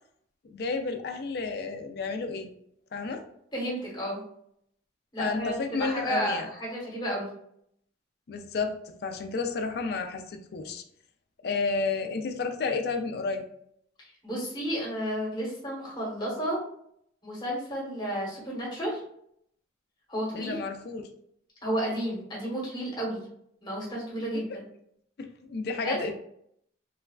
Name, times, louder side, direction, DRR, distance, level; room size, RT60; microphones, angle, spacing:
voice 1, 0.4-2.5 2.9-3.2 5.2-6.5 8.3-8.8 9.0-10.8 11.4-13.4 20.4-21.0 24.3-24.6 25.2-26.1, left 4 dB, 60° left, 6 dB, 0.4 m, -31 dB
voice 2, 3.5-4.2 5.1-7.3 14.0-16.6 17.2-19.0 20.1-20.6 21.6-23.3 23.6-24.6 25.8-26.0, equal, 25° left, -4 dB, 1.1 m, -32 dB
3.1 x 2.3 x 2.3 m, 0.70 s
head